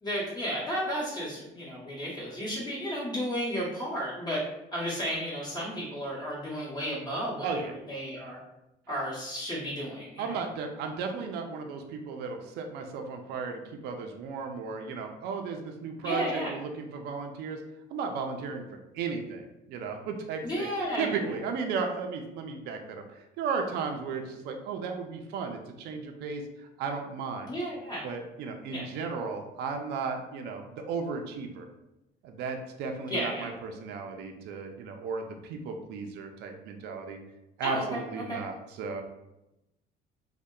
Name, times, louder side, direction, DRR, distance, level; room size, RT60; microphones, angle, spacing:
voice 1, 0.0-4.4 4.7-8.4 8.9-10.4 16.0-16.5 20.4-21.3 27.5-28.1 28.7-28.8 33.1-33.5 37.6-38.0 38.3-38.4, equal, 25° left, -7 dB, 0.9 m, -33 dB
voice 2, 10.2-17.6 17.9-18.7 18.9-20.7 21.0-26.4 26.8-27.5 28.0-31.7 32.2-37.2 37.6-39.0, right 5 dB, 80° right, 4 dB, 0.4 m, -35 dB
2.7 x 2.1 x 2.2 m, 0.92 s
cardioid pair, 110°, 17 cm